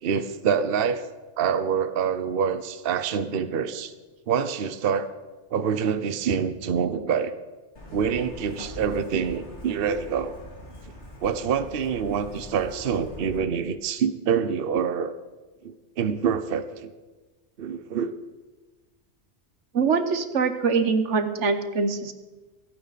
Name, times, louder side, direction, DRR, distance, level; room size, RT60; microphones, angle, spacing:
voice 1, 0.0-1.0 1.4-3.9 4.3-5.1 5.5-7.4 7.9-10.3 11.2-15.1 15.6-16.9 17.6-18.1, right 7 dB, 55° right, 11 dB, 0.9 m, -26 dB
Truck, 7.8-13.4, left 1 dB, 75° left, 2.9 m, -43 dB
voice 2, 19.7-22.1, right 5 dB, 85° right, 9 dB, 1.4 m, -23 dB
26.0 x 9.2 x 4.1 m, 1.2 s
omnidirectional pair, 1.2 m